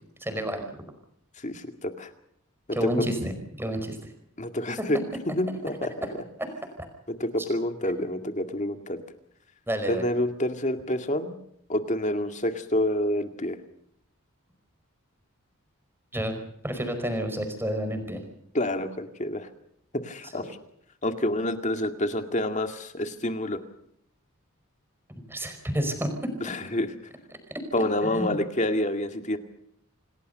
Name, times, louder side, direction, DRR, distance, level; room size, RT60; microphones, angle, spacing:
voice 1, 0.2-0.7 2.7-4.0 4.8-4.9 9.7-10.0 16.1-16.3 16.6-18.2 20.3-20.4 25.3-26.3 28.1-28.4, equal, 10° right, 6 dB, 5.0 m, -29 dB
voice 2, 1.4-2.1 2.7-2.9 4.4-5.0 5.3-6.2 7.1-9.0 9.9-11.3 11.7-13.6 18.5-19.5 20.0-20.6 21.0-23.6 26.4-26.9 27.7-29.4, left 1 dB, 35° left, 7 dB, 2.2 m, -28 dB
28.0 x 18.5 x 6.8 m, 0.72 s
head